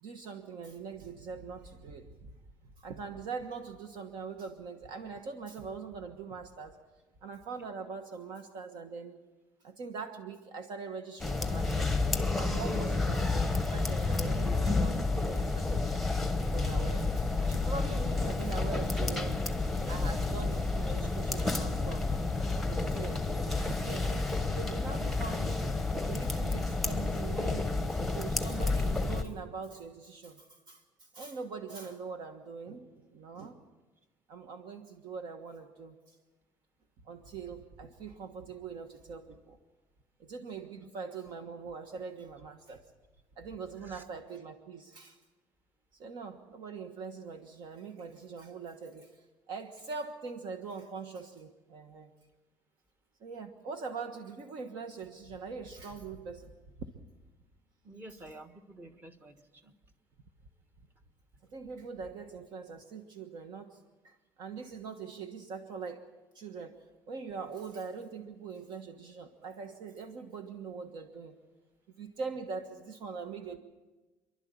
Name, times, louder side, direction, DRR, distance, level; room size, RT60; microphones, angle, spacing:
voice 1, 0.0-2.3 2.8-6.8 7.2-9.2 9.6-11.9 12.3-15.9 16.5-19.4 19.7-22.1 22.7-23.2 23.7-25.7 26.1-33.6 34.3-36.1 37.0-39.6 40.2-42.8 43.4-45.2 45.9-52.1 53.2-56.5 56.8-56.9 58.1-58.2 61.5-66.1 66.3-66.8 67.1-71.4 72.0-73.6, right 5 dB, 55° right, 6 dB, 1.4 m, -42 dB
sound 1, 11.2-29.2, left 3 dB, ahead, 1.1 m, -30 dB
voice 2, 57.8-59.7, right 1 dB, 20° right, 7 dB, 1.5 m, -50 dB
28.5 x 11.5 x 8.5 m, 1.2 s
cardioid pair, 160°, 9 cm